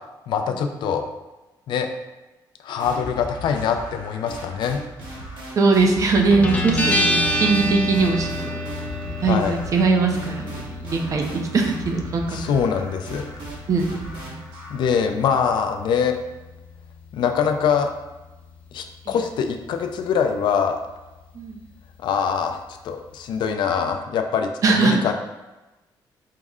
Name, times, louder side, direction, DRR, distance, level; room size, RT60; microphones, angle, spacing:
voice 1, 0.3-1.0 1.7-1.9 2.6-4.8 9.2-9.6 12.3-13.2 14.7-16.2 17.1-17.9 18.7-20.8 22.0-22.6 22.8-25.1, left 7 dB, 80° left, 6 dB, 0.4 m, -23 dB
sound 1, 2.8-14.9, equal, 75° right, 1.3 m, -38 dB
voice 2, 5.6-8.6 9.1-11.2 11.5-12.4 13.7-14.4 19.1-19.2 21.4-21.6 24.6-25.0, right 4 dB, 45° right, 3 dB, 0.6 m, -21 dB
Guitar, 6.3-23.5, equal, 20° left, 0.5 m, -31 dB
4.6 x 2.1 x 3.6 m, 1.1 s
cardioid pair, 145°, 8 cm